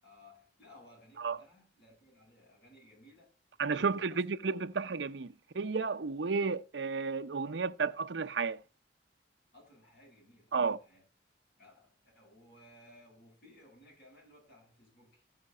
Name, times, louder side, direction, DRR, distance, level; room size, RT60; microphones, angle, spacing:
voice 1, 0.0-3.3 3.8-4.2 9.5-11.0 11.6-15.2, left 1 dB, 65° left, 8.0 m, -59 dB
voice 2, 3.6-8.6 10.5-10.8, right 5 dB, 80° right, 0.7 m, -32 dB
14.5 x 5.8 x 5.3 m
head